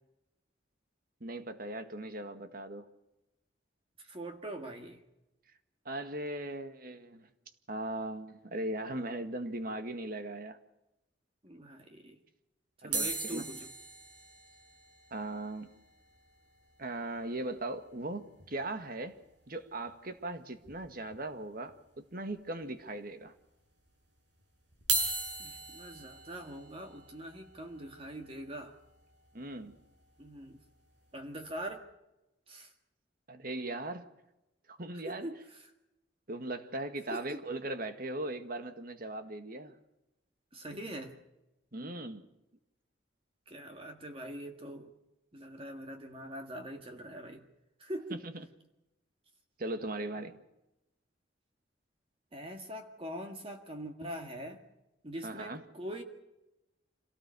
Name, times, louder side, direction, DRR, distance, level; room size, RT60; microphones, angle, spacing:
voice 1, 1.2-2.9 5.9-7.3 7.7-10.6 12.8-13.5 15.1-15.8 16.8-19.2 19.5-23.3 29.3-29.7 33.3-34.1 34.7-35.3 36.3-39.7 41.7-42.2 48.1-48.5 49.6-50.4 55.2-55.6, right 2 dB, 50° right, 1.8 m, -39 dB
voice 2, 4.0-5.0 11.4-12.2 12.8-13.7 25.4-28.7 30.2-30.6 31.1-31.9 32.5-32.7 35.0-35.4 37.1-37.4 40.5-41.2 43.5-44.9 45.3-47.5 47.8-48.2 52.3-54.6 55.0-56.0, right 1 dB, 30° right, 1.8 m, -43 dB
sound 1, 12.9-17.3 17.6-17.7 17.8-18.0 18.4-18.5 19.9-20.0 20.7-21.2 21.7-21.8 22.6-22.7 24.7-30.8 31.4-31.6, right 3 dB, 75° right, 7.5 m, -39 dB
26.5 x 18.0 x 6.8 m
head